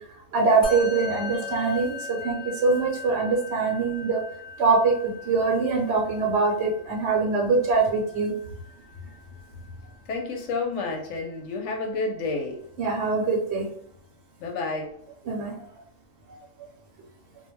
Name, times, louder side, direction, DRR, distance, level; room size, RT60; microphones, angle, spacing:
voice 1, 0.3-4.2 4.6-8.3 12.8-13.7 15.3-15.6 16.3-16.4, right 4 dB, 65° right, 0 dB, 0.8 m, -23 dB
Musical instrument, 0.6-10.2, left 4 dB, 35° left, 0.6 m, -39 dB
voice 2, 10.1-12.6 14.4-14.9, left 3 dB, 70° left, 2 dB, 0.9 m, -30 dB
2.2 x 2.1 x 3.0 m, 0.68 s
omnidirectional pair, 1.3 m